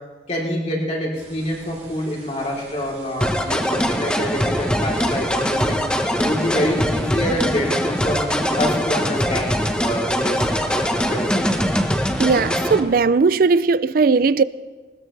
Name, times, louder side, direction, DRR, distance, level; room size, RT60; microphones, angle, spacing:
voice 1, 0.3-5.8 6.2-10.4 10.7-11.7, equal, 40° left, 3.5 m, -26 dB
sound 1, 1.1-12.8, right 1 dB, 35° right, 2.8 m, -41 dB
sound 2, 3.2-12.8, equal, 5° left, 1.0 m, -22 dB
voice 2, 12.2-14.4, right 4 dB, 55° right, 0.4 m, -17 dB
20.5 x 19.5 x 3.3 m
head